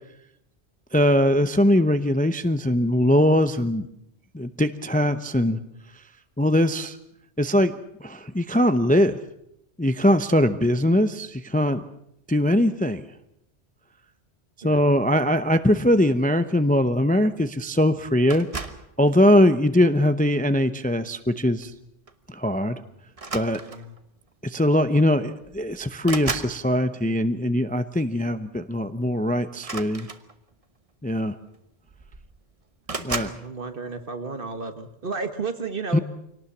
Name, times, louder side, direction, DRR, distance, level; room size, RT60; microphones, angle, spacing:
voice 1, 0.9-3.9 4.3-5.6 6.4-7.0 7.4-7.7 8.0-9.2 9.8-11.8 12.3-13.0 14.6-18.5 19.0-21.7 22.3-22.8 23.3-23.6 24.4-30.1 31.0-31.3 33.0-33.3 35.9-36.0, left 1 dB, 10° left, 11 dB, 0.7 m, -21 dB
sound 1, 18.3-18.9 19.8-20.1 21.6-21.8 22.1-22.3 23.1-24.0 25.0-25.1 25.4-26.6 29.5-30.6 31.5-31.6 31.9-32.4 32.9-33.4, right 4 dB, 30° right, 1.1 m, -34 dB
voice 2, 33.0-36.0, right 4 dB, 50° right, 9 dB, 1.7 m, -33 dB
25.0 x 18.5 x 7.2 m, 0.77 s
omnidirectional pair, 1.2 m